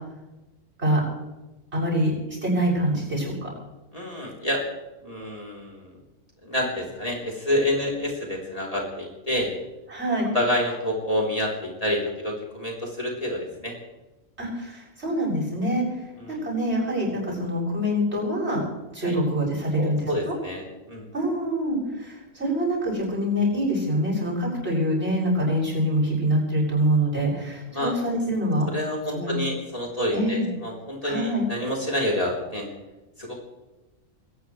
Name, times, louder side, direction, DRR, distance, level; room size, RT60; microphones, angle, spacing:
voice 1, 1.7-3.5 9.9-10.3 14.4-15.8 16.3-18.6 18.9-20.3 21.1-28.7 29.1-29.3 30.1-30.5 31.0-31.5, equal, 50° right, -3 dB, 7.8 m, -25 dB
voice 2, 3.9-4.6 5.0-5.9 6.4-9.5 10.3-13.7 16.2-16.4 19.0-19.2 19.8-21.1 27.7-27.9 28.7-32.7 33.2-33.4, left 1 dB, 25° left, -2 dB, 3.9 m, -28 dB
22.5 x 19.0 x 3.3 m, 1.1 s
omnidirectional pair, 1.4 m